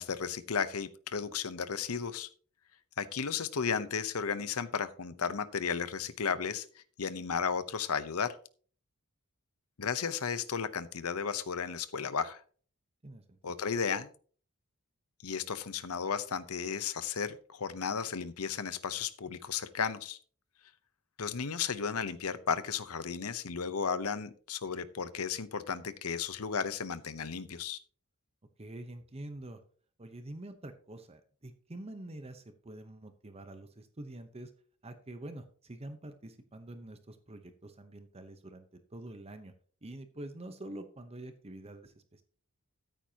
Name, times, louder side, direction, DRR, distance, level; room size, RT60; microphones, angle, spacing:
voice 1, 0.0-2.3 3.0-6.7 7.0-8.3 9.8-12.4 13.4-14.1 15.2-20.2 21.2-27.8, left 6 dB, 75° left, 14 dB, 0.8 m, -34 dB
voice 2, 13.0-13.5 28.6-29.6 30.0-34.5 34.8-38.6 38.9-39.5 39.8-42.2, right 1 dB, 30° right, 8 dB, 0.9 m, -46 dB
13.5 x 9.0 x 2.9 m, 0.43 s
head